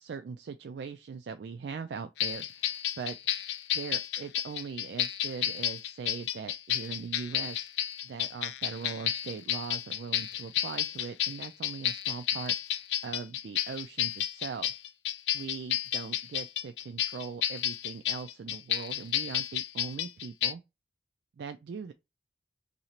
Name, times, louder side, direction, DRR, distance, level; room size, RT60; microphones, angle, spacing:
voice 1, 0.0-3.2 3.7-7.7 8.0-14.7 15.3-20.6 21.4-21.9, right 5 dB, 65° right, 0.3 m, -40 dB
sound 1, 2.2-20.5, left 11 dB, 70° left, 0.4 m, -32 dB
2.9 x 2.7 x 4.2 m
head